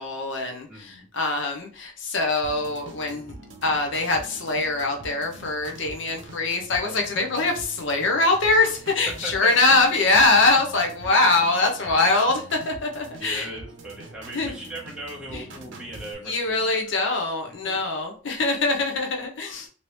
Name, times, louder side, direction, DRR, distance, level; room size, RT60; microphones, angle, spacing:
voice 1, 0.0-3.3 3.6-13.5 14.3-14.5 15.3-15.4 16.2-19.7, left 3 dB, 65° left, 3 dB, 0.6 m, -23 dB
voice 2, 0.7-1.1 9.2-9.8 13.2-16.7, right 1 dB, 5° right, -5 dB, 0.9 m, -38 dB
sound 1, 2.4-16.1, right 1 dB, 60° right, 0.7 m, -44 dB
3.0 x 2.7 x 3.1 m, 0.42 s
head